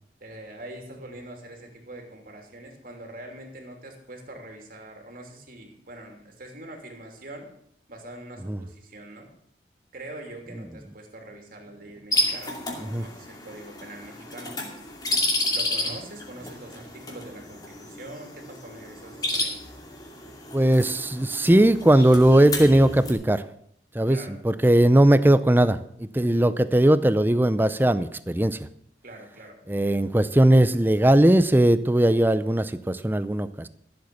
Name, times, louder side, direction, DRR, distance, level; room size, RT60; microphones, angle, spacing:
voice 1, 0.2-7.5 7.9-9.3 9.9-14.6 15.5-19.6 24.1-24.4 29.0-29.6, right 1 dB, 50° right, 2 dB, 3.0 m, -43 dB
sound 1, 12.1-23.1, left 1 dB, 20° left, 2.4 m, -31 dB
voice 2, 20.5-23.4 23.9-28.6 29.7-33.7, right 1 dB, 10° right, 14 dB, 0.5 m, -19 dB
14.5 x 7.9 x 7.0 m, 0.70 s
head